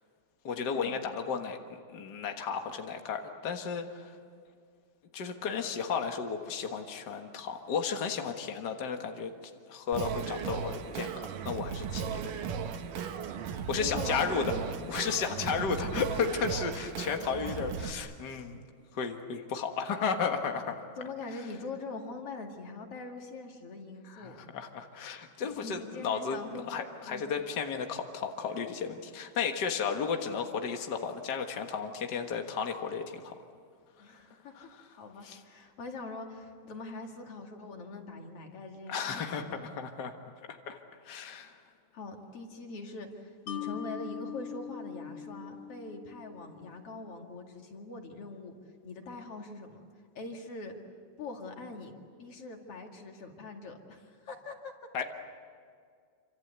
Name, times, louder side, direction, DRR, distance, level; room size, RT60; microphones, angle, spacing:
voice 1, 0.4-1.6 1.9-4.1 5.1-9.3 9.7-12.3 13.7-14.5 14.9-18.6 18.9-20.8 24.1-26.4 26.7-33.3 34.6-34.7 35.2-35.4 38.9-40.1 40.5-40.8 41.0-41.5 54.9-55.0, left 6 dB, 90° left, 4 dB, 0.9 m, -34 dB
Singing, 9.9-17.9, right 7 dB, 65° right, 2.6 m, -36 dB
voice 2, 13.8-14.7 15.4-15.5 21.0-24.4 25.4-26.7 27.1-27.2 34.0-39.5 41.9-48.5 48.8-49.8 50.1-50.7 51.2-54.7, left 3 dB, 45° left, 3 dB, 2.8 m, -43 dB
Mallet percussion, 43.5-46.7, left 9 dB, 70° left, 2.3 m, -42 dB
27.5 x 26.0 x 8.2 m, 2.2 s
omnidirectional pair, 4.4 m